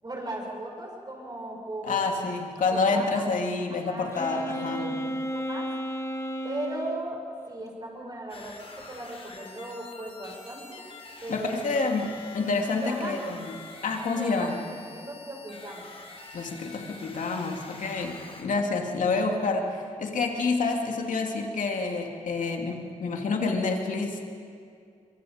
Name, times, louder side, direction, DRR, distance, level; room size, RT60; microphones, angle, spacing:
voice 1, 0.0-2.0 2.7-3.2 3.8-5.7 6.4-8.6 8.9-10.8 11.2-11.6 12.8-13.2 14.2-14.6 14.9-15.9, right 1 dB, 30° right, -1 dB, 6.7 m, -37 dB
voice 2, 1.8-4.8 11.3-13.6 13.8-14.6 16.3-24.3, left 3 dB, 75° left, 2 dB, 2.7 m, -28 dB
Wind instrument woodwind instrument, 4.1-7.0, equal, 20° left, 1.9 m, -33 dB
sound 1, 8.3-18.4, left 3 dB, 45° left, 3.3 m, -46 dB
25.5 x 23.5 x 5.2 m, 2.3 s
cardioid pair, 70°, 13 cm